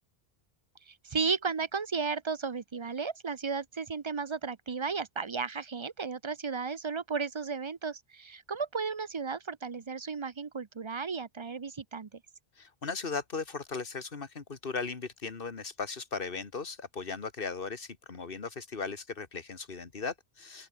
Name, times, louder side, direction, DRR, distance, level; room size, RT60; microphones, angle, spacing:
voice 1, 0.9-12.2, right 5 dB, 35° right, 0.6 m, -34 dB
voice 2, 12.6-20.7, left 4 dB, 55° left, 1.9 m, -37 dB
open air
omnidirectional pair, 1.1 m